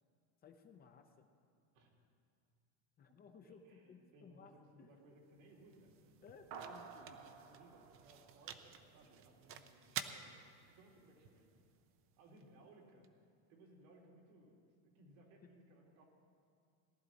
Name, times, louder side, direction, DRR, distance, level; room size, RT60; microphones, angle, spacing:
voice 1, 0.4-1.2 3.0-4.9 6.2-7.2, left 6 dB, 25° left, 6 dB, 0.6 m, -60 dB
voice 2, 3.4-5.9 7.0-10.3 10.7-11.5 12.2-13.1 13.5-14.6 14.8-16.1, right 2 dB, 85° right, -1 dB, 3.1 m, -63 dB
sound 1, 5.0-13.1, right 8 dB, 35° right, 0.6 m, -52 dB
sound 2, 6.5-9.2, right 5 dB, 55° right, 1.1 m, -54 dB
18.0 x 12.0 x 4.0 m, 2.4 s
cardioid pair, 165°, 39 cm